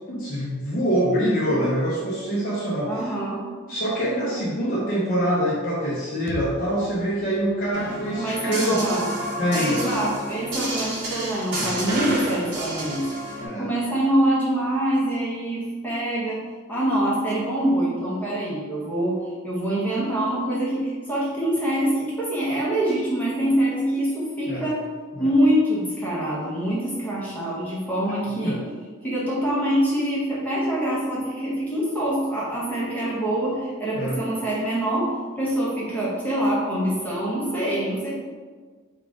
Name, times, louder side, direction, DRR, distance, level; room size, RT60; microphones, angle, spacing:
voice 1, 0.1-3.1 3.7-8.8 9.4-9.9 13.4-13.7 24.5-24.7 25.1-25.3 28.4-28.6 33.9-34.2, equal, 40° left, -7 dB, 0.6 m, -25 dB
voice 2, 2.9-3.4 8.2-9.1 9.5-13.1 13.5-16.4 16.7-24.8 25.2-28.6 29.0-35.1 35.4-38.1, right 1 dB, 5° left, -8 dB, 0.9 m, -25 dB
sound 1, 6.3-10.1, right 2 dB, 90° right, 0.4 m, -42 dB
sound 2, 7.7-13.5, right 1 dB, 55° right, 1.1 m, -30 dB
4.0 x 2.4 x 4.7 m, 1.5 s
head